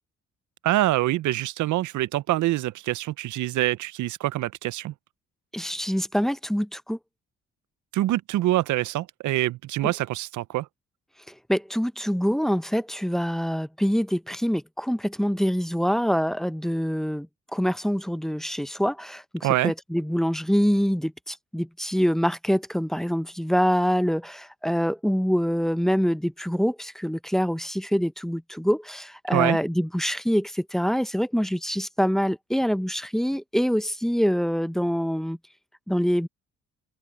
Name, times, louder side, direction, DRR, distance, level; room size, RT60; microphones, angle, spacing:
voice 1, 0.6-4.9 7.9-10.7 19.4-19.7 29.3-29.6, right 15 dB, 75° right, 0.7 m, -25 dB
voice 2, 5.5-7.0 9.8-9.9 11.5-17.3 17.5-35.4 35.9-36.3, equal, ahead, 0.7 m, -25 dB
cardioid pair, 90°, 30 cm